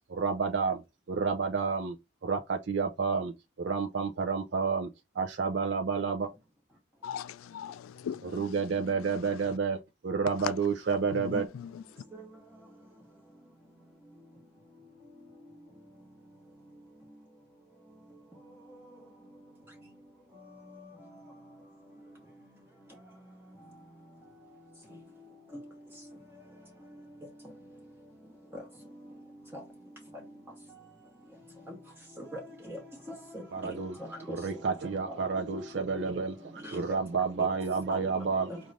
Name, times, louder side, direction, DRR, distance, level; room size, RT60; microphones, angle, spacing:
voice 1, 0.1-0.8 1.1-1.9 2.2-3.3 3.6-4.9 5.2-6.3 8.2-11.5 33.5-33.9 34.4-38.5, right 5 dB, 55° right, 0.4 m, -30 dB
voice 2, 7.0-8.6 11.1-11.8, left 8 dB, 90° left, 0.3 m, -40 dB
voice 3, 32.2-32.8 33.1-33.8 34.3-34.4 35.2-35.3 36.6-36.8 37.9-38.0 38.5-38.6, equal, 10° right, 0.8 m, -40 dB
5.2 x 2.5 x 3.2 m
head